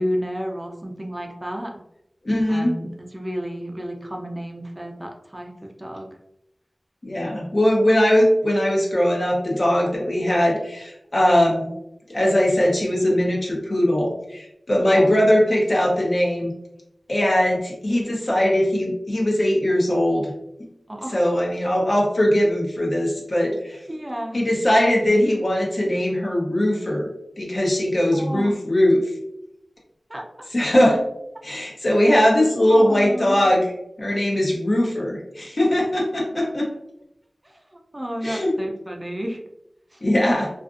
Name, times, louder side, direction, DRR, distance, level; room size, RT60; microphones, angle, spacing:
voice 1, 0.0-1.7 2.5-6.1 14.7-15.2 20.9-21.3 23.9-24.4 28.1-28.5 30.1-30.2 32.6-33.5 35.6-35.7 37.4-39.4 39.9-40.0, equal, 25° right, 1 dB, 0.4 m, -31 dB
voice 2, 2.2-2.8 7.0-11.7 12.1-16.5 17.1-20.3 21.1-23.8 24.3-27.1 27.4-29.0 30.5-31.0 31.4-33.6 34.0-36.7 38.2-38.5 40.0-40.5, left 1 dB, 60° left, -2 dB, 0.8 m, -20 dB
2.5 x 2.4 x 2.4 m, 0.81 s
wide cardioid pair, 50°, 0 cm